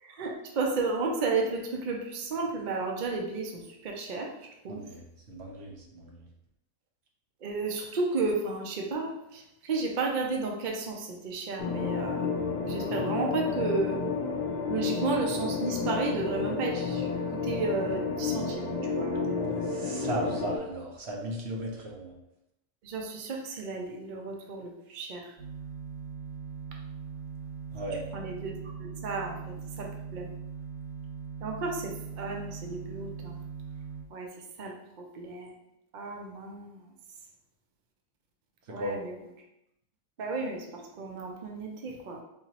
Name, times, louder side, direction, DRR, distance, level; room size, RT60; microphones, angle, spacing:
voice 1, 0.0-4.3 4.6-4.8 7.4-12.3 12.6-14.0 14.7-19.7 22.8-25.3 28.1-30.3 31.4-33.4 34.1-34.3 34.6-35.5 35.9-36.8 38.7-39.1 40.2-42.2, right 3 dB, 70° right, 1 dB, 0.4 m, -33 dB
voice 2, 4.7-5.0 5.3-6.2 19.5-22.1 27.7-28.0 38.8-39.0, right 1 dB, 50° right, -1 dB, 0.9 m, -36 dB
sound 1, 11.6-20.6, left 4 dB, 65° left, 0.4 m, -31 dB
sound 2, 25.4-34.0, right 6 dB, 30° right, 1.7 m, -40 dB
4.8 x 2.9 x 2.9 m, 0.86 s
omnidirectional pair, 1.6 m